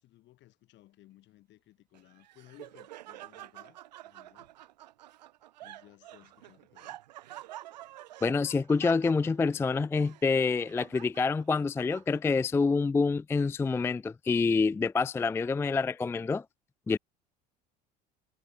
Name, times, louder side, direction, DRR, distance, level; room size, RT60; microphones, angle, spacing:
voice 1, 0.0-4.5 5.6-7.0, left 15 dB, 60° left, 7.8 m, -59 dB
Laughter, 1.9-12.5, right 14 dB, 90° right, 2.5 m, -49 dB
voice 2, 8.2-16.4 16.9-17.0, left 4 dB, 10° left, 0.3 m, -27 dB
hypercardioid pair, 75°, 21 cm